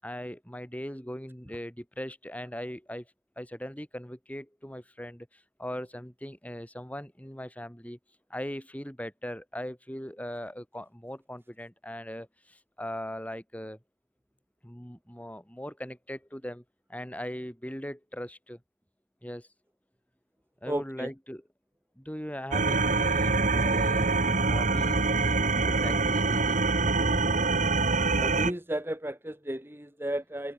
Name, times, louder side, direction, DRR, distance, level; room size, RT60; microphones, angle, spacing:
voice 1, 0.0-3.1 3.4-8.0 8.3-13.8 14.6-16.6 16.9-18.6 19.2-19.5 20.6-21.4 22.0-26.6, equal, 5° left, 6.7 m, -40 dB
voice 2, 20.7-21.1 28.2-30.5, right 1 dB, 10° right, 1.8 m, -33 dB
sound 1, 22.5-28.5, right 3 dB, 40° right, 2.2 m, -25 dB
head